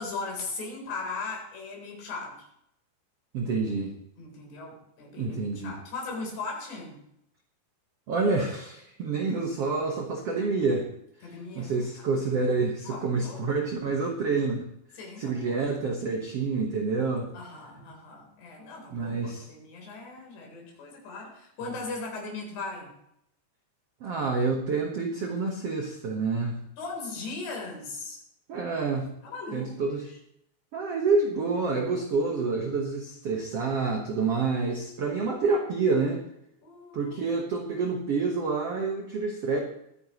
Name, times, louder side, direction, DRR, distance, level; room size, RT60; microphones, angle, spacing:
voice 1, 0.0-2.3 4.2-7.0 11.2-11.7 12.9-13.6 15.0-15.6 17.3-22.9 26.8-28.2 29.2-30.0 36.6-37.1, left 3 dB, 75° left, 0 dB, 5.8 m, -38 dB
voice 2, 3.3-3.9 5.2-5.7 8.1-10.9 11.5-14.6 15.2-17.3 18.9-19.5 24.0-26.5 28.5-29.1 29.5-30.1 30.7-36.2 36.9-39.6, right 4 dB, 75° right, 2 dB, 1.4 m, -28 dB
22.0 x 9.9 x 3.0 m, 0.76 s
omnidirectional pair, 4.8 m